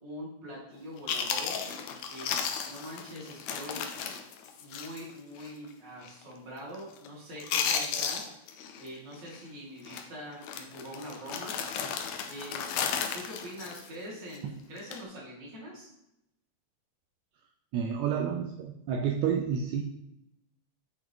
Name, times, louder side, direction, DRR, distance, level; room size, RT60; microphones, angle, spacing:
voice 1, 0.0-1.6 2.1-3.8 4.6-8.2 8.8-11.6 12.3-12.7 13.1-15.9, equal, 30° right, -6 dB, 2.4 m, -43 dB
Chewing mastication, 0.7-0.8 1.1-5.1 5.4-5.5 6.0-6.3 6.6-7.1 7.4-8.9 9.1-9.4 9.8-10.0 10.4-14.4 14.8-15.0, left 7 dB, 80° left, 1.7 m, -34 dB
voice 2, 17.7-19.8, right 7 dB, 80° right, 2 dB, 1.8 m, -30 dB
9.2 x 3.6 x 3.6 m, 0.84 s
omnidirectional pair, 3.4 m